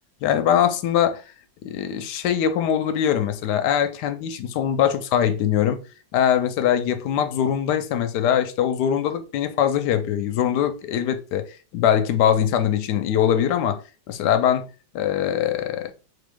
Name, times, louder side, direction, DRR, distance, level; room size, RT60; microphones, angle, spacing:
voice 1, 0.2-1.2 1.6-5.8 6.1-11.5 11.7-13.8 14.1-14.7 14.9-15.9, left 9 dB, 70° left, 1.1 m, -22 dB
3.7 x 3.6 x 3.5 m
omnidirectional pair, 2.0 m